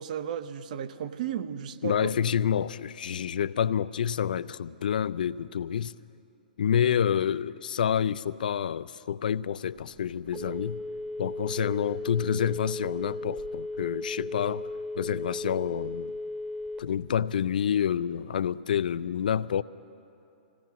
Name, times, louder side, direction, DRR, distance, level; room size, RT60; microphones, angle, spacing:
voice 1, 0.0-2.1, right 9 dB, 50° right, 0.7 m, -34 dB
voice 2, 1.8-5.9 6.6-10.8 11.2-14.7 15.0-16.1 16.8-19.6, left 8 dB, 60° left, 0.4 m, -28 dB
Telephone, 10.2-17.1, left 2 dB, 20° right, 1.0 m, -36 dB
26.5 x 16.5 x 2.9 m
figure-of-eight pair, 115°, 5 cm